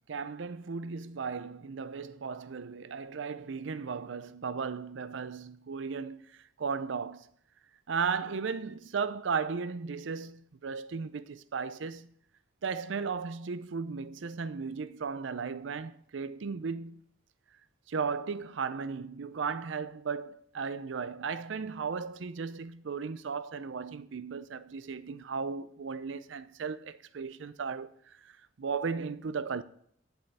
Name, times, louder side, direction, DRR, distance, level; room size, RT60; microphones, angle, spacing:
voice 1, 0.1-7.3 7.9-12.1 12.6-17.0 17.9-29.6, right 5 dB, 75° right, 0.5 m, -36 dB
10.0 x 8.0 x 4.2 m
head